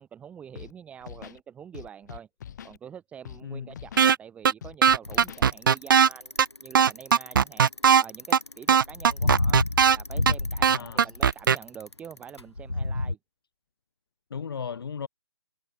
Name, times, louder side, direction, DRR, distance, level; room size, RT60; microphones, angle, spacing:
voice 1, 0.0-2.3 2.6-9.6 9.9-13.2, right 8 dB, 10° right, 1.6 m, -46 dB
Scratching (performance technique), 0.5-0.7 1.0-1.4 1.7-2.8 3.2-3.4 3.7-4.1 4.6-5.5, left 9 dB, 45° left, 2.7 m, -43 dB
sound 1, 4.0-4.2 4.4-4.5 4.8-6.1 6.4-6.5 6.7-8.0 8.3-8.4 8.7-10.0 10.3-10.4 10.6-11.6, right 7 dB, 50° right, 0.9 m, -18 dB
Bicycle, 5.0-13.1, left 2 dB, 90° left, 3.7 m, -30 dB
voice 2, 10.7-11.0 14.3-15.1, left 6 dB, 60° left, 0.6 m, -35 dB
figure-of-eight pair, 140°, 14 cm